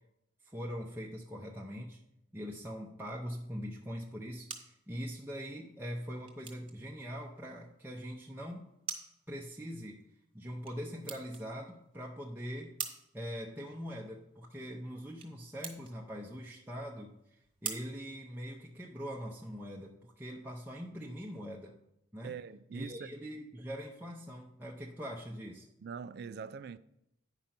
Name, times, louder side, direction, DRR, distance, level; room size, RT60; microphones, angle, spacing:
voice 1, 0.4-2.0 2.3-8.7 9.3-10.0 10.3-12.8 13.1-21.7 22.1-22.4 22.7-25.7, equal, 10° right, 0.6 m, -42 dB
sound 1, 4.1-19.0, right 6 dB, 25° right, 1.2 m, -48 dB
voice 2, 22.2-23.1 25.8-26.8, right 6 dB, 55° right, 0.3 m, -43 dB
9.7 x 5.2 x 5.8 m
head